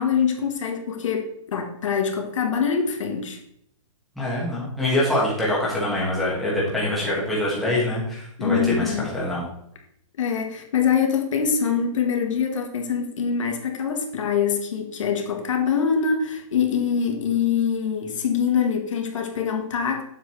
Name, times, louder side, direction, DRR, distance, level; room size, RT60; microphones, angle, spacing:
voice 1, 0.0-3.4 8.4-9.1 10.2-20.0, left 7 dB, 65° left, 4 dB, 1.2 m, -24 dB
voice 2, 4.1-9.4, left 1 dB, ahead, -7 dB, 1.3 m, -24 dB
7.3 x 6.4 x 3.1 m, 0.73 s
hypercardioid pair, 175°, 17 cm